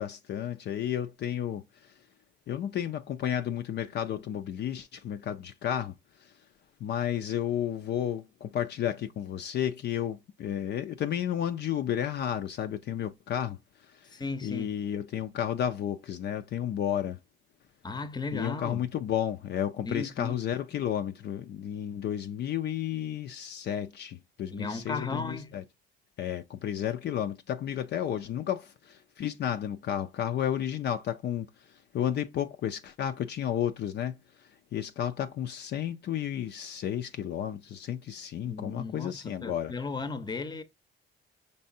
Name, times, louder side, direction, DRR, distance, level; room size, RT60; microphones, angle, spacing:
voice 1, 0.0-1.6 2.5-5.9 6.8-13.6 14.4-17.2 18.3-25.6 26.2-31.5 31.9-34.2 34.7-39.7, left 10 dB, 60° left, 0.4 m, -32 dB
voice 2, 14.1-14.7 17.8-18.8 19.8-20.3 24.5-25.5 38.4-40.6, left 3 dB, 20° left, 0.7 m, -35 dB
5.3 x 3.3 x 2.6 m
cardioid pair, 90°, 20 cm